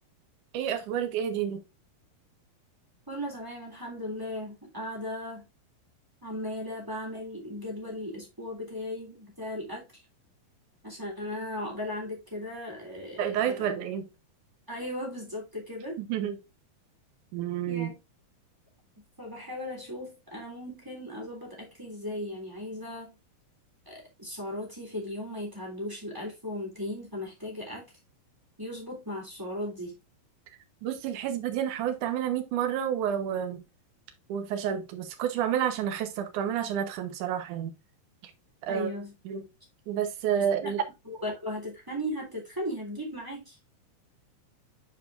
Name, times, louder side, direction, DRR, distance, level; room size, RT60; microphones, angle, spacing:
voice 1, 0.5-1.6 13.2-14.1 16.0-16.4 17.3-17.9 30.8-33.6 34.3-37.7 38.7-38.9 39.3-39.4 39.9-40.8, right 9 dB, 65° right, 2.3 m, -29 dB
voice 2, 3.1-5.4 6.2-10.0 10.8-13.7 14.7-16.0 17.7-18.0 19.2-23.1 23.8-27.8 28.6-30.0 38.7-39.1 40.6-40.7 41.0-43.6, left 1 dB, 5° right, 2.7 m, -37 dB
9.4 x 5.0 x 2.5 m
omnidirectional pair, 4.2 m